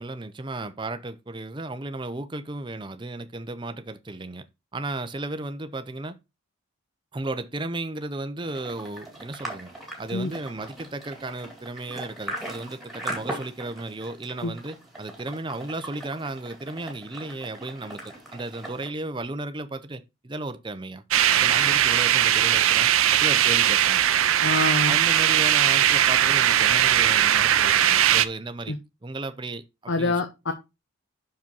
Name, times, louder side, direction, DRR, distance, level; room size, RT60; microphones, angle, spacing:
voice 1, 0.0-4.4 4.7-6.2 7.1-9.7 10.0-21.0 21.3-22.9 23.2-24.0 24.8-28.7 29.0-30.1, right 2 dB, 20° right, 0.6 m, -34 dB
sound 1, 8.4-18.9, right 1 dB, ahead, 2.2 m, -39 dB
sound 2, 21.1-28.3, right 11 dB, 80° right, 0.6 m, -20 dB
voice 2, 24.4-25.0 28.7-28.8 29.9-30.5, left 2 dB, 60° left, 0.8 m, -26 dB
6.2 x 5.0 x 5.3 m
head